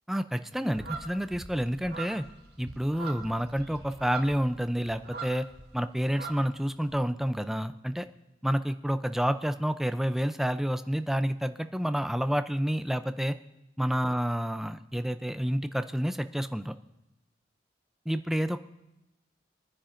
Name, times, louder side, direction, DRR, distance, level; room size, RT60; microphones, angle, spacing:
voice 1, 0.1-2.3 2.6-5.5 5.7-8.1 8.4-13.4 13.8-16.8 18.1-18.6, equal, ahead, 10 dB, 0.4 m, -29 dB
sound 1, 0.7-5.7 6.0-7.0, right 4 dB, 60° right, 1.5 m, -42 dB
26.5 x 9.9 x 2.5 m, 0.95 s
head